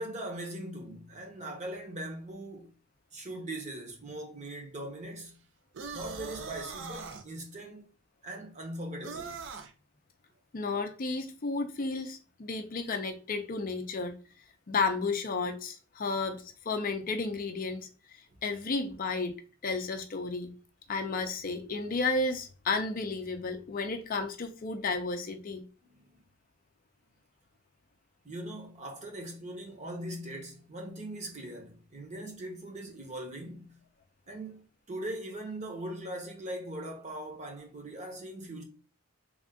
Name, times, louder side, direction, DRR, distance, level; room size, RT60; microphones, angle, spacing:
voice 1, 0.0-2.7 3.1-5.4 5.9-7.9 8.2-9.4 25.9-26.1 28.2-33.8 34.3-38.6, right 1 dB, 30° right, 0.8 m, -40 dB
sound 1, 5.7-7.2 9.0-9.7, right 5 dB, 55° right, 0.5 m, -40 dB
voice 2, 10.5-14.2 14.7-20.5 20.9-25.6, left 3 dB, 40° left, 0.4 m, -33 dB
3.5 x 2.4 x 3.6 m
head